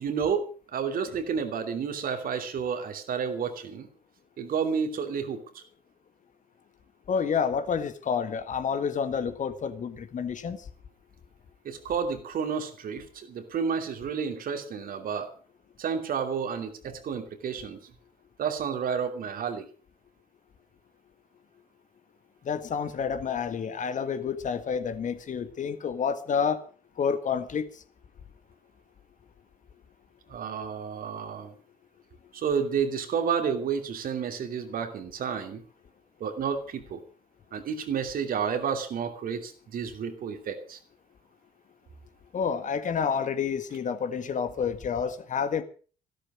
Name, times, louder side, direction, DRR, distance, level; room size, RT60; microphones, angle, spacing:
voice 1, 0.0-3.9 4.4-5.6 11.6-15.3 15.8-17.9 18.4-19.7 30.3-31.5 32.3-35.6 36.2-37.0 37.5-40.8, right 6 dB, 50° right, 7 dB, 2.7 m, -31 dB
voice 2, 7.1-10.6 22.5-26.6 27.0-27.7 42.3-45.6, left 6 dB, 45° left, 11 dB, 1.8 m, -29 dB
15.0 x 13.0 x 6.1 m, 0.40 s
figure-of-eight pair, 45°, 18 cm